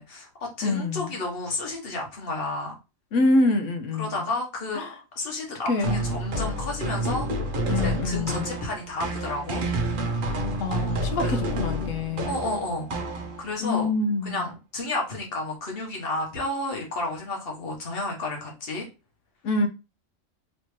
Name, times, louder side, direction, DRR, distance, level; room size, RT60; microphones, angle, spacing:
voice 1, 0.0-2.7 4.0-4.8 5.1-7.3 7.7-9.6 11.2-11.4 12.2-12.9 13.4-13.9 14.2-18.9, left 2 dB, 50° left, 1.2 m, -31 dB
voice 2, 0.6-1.1 3.1-4.2 4.7-4.9 5.7-6.0 7.7-8.5 10.3-12.4 13.6-14.5 19.4-19.7, left 2 dB, 75° left, 1.0 m, -26 dB
sound 1, 5.8-13.7, right 1 dB, 50° right, 0.7 m, -29 dB
3.2 x 2.9 x 3.0 m
omnidirectional pair, 1.4 m